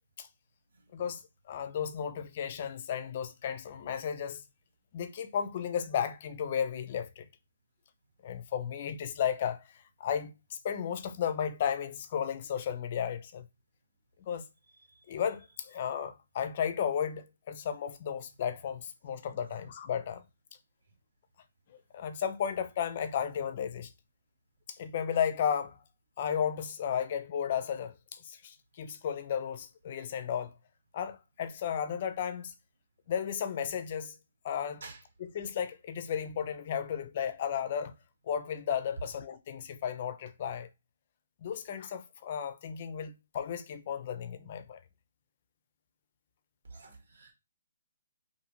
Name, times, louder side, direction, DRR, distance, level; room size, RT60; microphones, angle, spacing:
voice 1, 1.5-4.4 4.9-7.3 8.2-9.6 10.0-10.3 10.6-13.4 14.3-14.5 15.1-20.2 21.9-23.9 24.8-25.8 26.2-30.5 30.9-32.5 33.1-34.2 34.4-34.8 35.2-37.9 38.3-40.7 41.4-44.8, left 8 dB, 45° left, 0.4 m, -34 dB
voice 2, 46.7-47.3, right 3 dB, 80° right, 1.3 m, -49 dB
2.5 x 2.5 x 2.9 m
hypercardioid pair, 145°, 0 cm